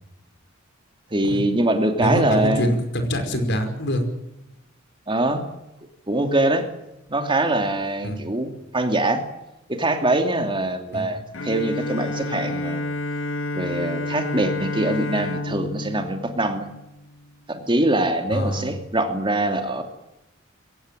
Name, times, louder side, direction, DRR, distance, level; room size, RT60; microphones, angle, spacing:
voice 1, 1.1-2.7 5.1-5.5 6.1-6.7 7.1-9.2 9.7-12.9 13.5-16.7 17.5-19.8, right 1 dB, 25° right, 6 dB, 2.7 m, -23 dB
voice 2, 2.0-4.0 8.0-8.2 10.9-11.2 18.3-18.7, equal, 60° left, 6 dB, 5.2 m, -24 dB
Bowed string instrument, 11.3-17.2, left 2 dB, 80° left, 2.1 m, -30 dB
23.0 x 18.0 x 9.1 m, 0.91 s
head